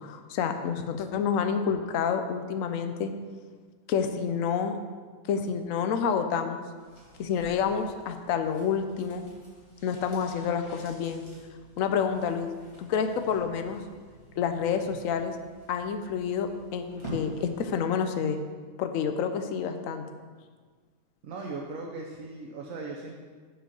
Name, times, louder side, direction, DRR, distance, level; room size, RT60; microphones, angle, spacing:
voice 1, 0.0-3.1 3.9-4.8 5.2-6.6 7.2-9.2 9.8-11.2 11.8-12.5 12.8-13.8 14.4-15.4 15.7-18.4 18.8-20.0, left 7 dB, 70° left, 7 dB, 1.0 m, -28 dB
sound 1, 6.7-17.9 18.2-18.3, right 1 dB, 20° left, 2.4 m, -48 dB
voice 2, 21.2-23.1, right 3 dB, 65° right, 0 dB, 1.2 m, -38 dB
7.6 x 4.9 x 6.7 m, 1.5 s
omnidirectional pair, 1.5 m